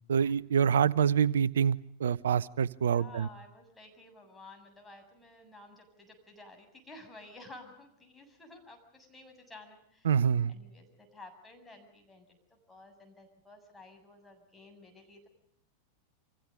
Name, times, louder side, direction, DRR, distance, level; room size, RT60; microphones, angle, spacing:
voice 1, 0.1-3.3 10.0-10.5, right 7 dB, 65° right, 21 dB, 0.9 m, -26 dB
voice 2, 2.9-15.3, left 2 dB, 10° left, 3 dB, 7.5 m, -53 dB
30.0 x 26.5 x 5.3 m, 0.69 s
figure-of-eight pair, 90°, 0 cm